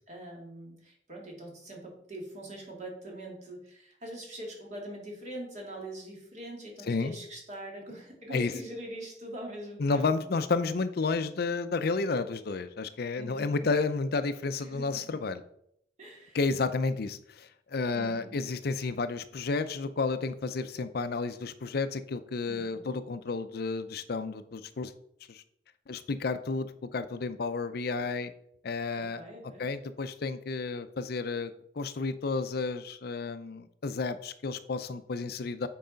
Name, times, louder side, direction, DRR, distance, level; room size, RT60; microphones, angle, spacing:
voice 1, 0.1-10.1 13.2-13.7 14.6-15.2 16.0-16.4 17.9-18.4 22.5-23.0 29.0-29.6, right 1 dB, 40° right, -1 dB, 2.5 m, -43 dB
voice 2, 6.9-7.2 8.3-8.5 9.8-15.4 16.3-24.9 25.3-25.4 25.9-28.3 28.6-35.7, left 4 dB, 55° left, 11 dB, 0.5 m, -31 dB
7.8 x 4.8 x 5.1 m, 0.72 s
head